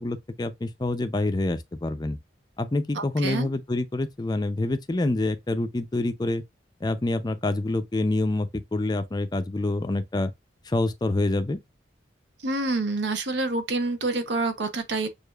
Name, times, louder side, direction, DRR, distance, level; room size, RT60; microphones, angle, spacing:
voice 1, 0.0-2.2 2.6-6.4 6.8-10.3 10.7-11.6, left 2 dB, 25° left, 0.4 m, -26 dB
voice 2, 2.9-3.5 12.4-15.1, right 2 dB, 75° right, 0.8 m, -27 dB
6.6 x 2.5 x 2.3 m
head